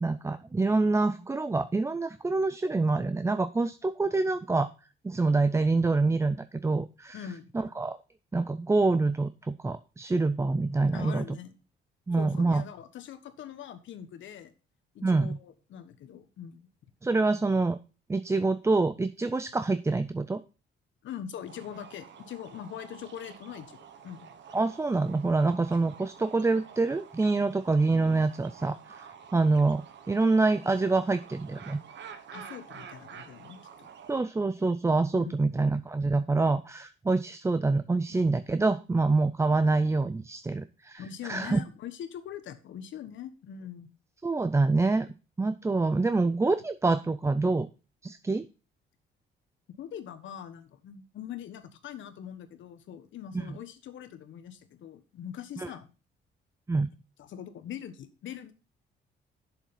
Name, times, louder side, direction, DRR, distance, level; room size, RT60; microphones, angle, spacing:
voice 1, 0.0-4.7 5.0-7.2 7.5-8.0 8.3-11.2 12.1-12.6 15.0-15.4 17.0-17.8 18.1-20.4 24.5-29.0 29.3-31.8 34.1-41.6 44.2-45.1 45.4-47.7 48.0-48.5 53.3-53.5 55.6-55.7 56.7-56.9, right 3 dB, 15° right, 13 dB, 0.5 m, -26 dB
voice 2, 7.1-7.5 10.9-11.5 12.2-14.5 14.9-16.6 21.0-23.8 24.0-24.3 32.3-33.9 35.1-35.4 41.0-43.9 49.8-55.9 57.2-58.5, left 9 dB, 75° left, 11 dB, 1.3 m, -42 dB
sound 1, 21.5-34.2, right 7 dB, 65° right, 1.3 m, -49 dB
7.3 x 7.1 x 5.6 m, 0.34 s
cardioid pair, 90°, 20 cm